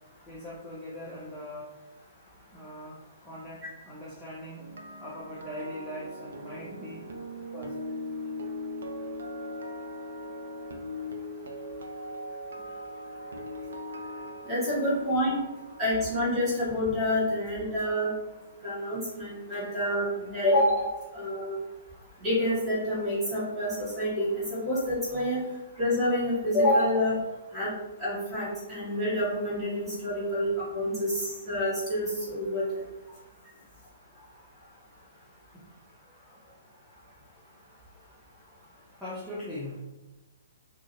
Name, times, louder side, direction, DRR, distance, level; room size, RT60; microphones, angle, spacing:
voice 1, 0.3-1.7 2.5-4.7 5.0-7.1 7.5-8.0 13.6-13.7 19.5-19.6 33.1-33.3 33.6-33.9 35.5-35.7 36.0-36.5 39.0-39.8, left 1 dB, 5° left, -9 dB, 0.5 m, -41 dB
sound 1, 4.5-18.6 18.9-19.2, left 1 dB, 60° right, 0.3 m, -40 dB
voice 2, 14.5-15.4 15.8-18.1 18.6-20.9 21.1-21.6 22.2-25.4 25.8-27.2 27.5-27.7 28.0-32.6, left 1 dB, 10° right, -9 dB, 1.3 m, -27 dB
2.5 x 2.3 x 2.9 m, 1.1 s
figure-of-eight pair, 120°, 0 cm